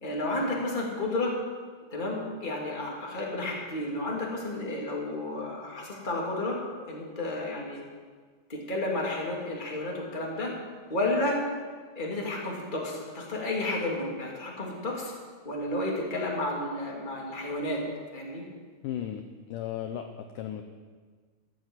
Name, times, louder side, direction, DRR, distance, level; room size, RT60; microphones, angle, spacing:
voice 1, 0.0-1.4 1.9-6.6 6.9-7.8 8.5-10.5 10.9-11.4 12.0-15.1 15.4-17.8 18.1-18.4, left 2 dB, 15° left, -3 dB, 2.4 m, -31 dB
voice 2, 18.8-19.3 19.5-20.6, left 10 dB, 75° left, 6 dB, 2.0 m, -35 dB
14.0 x 10.5 x 8.0 m, 1.5 s
omnidirectional pair, 4.4 m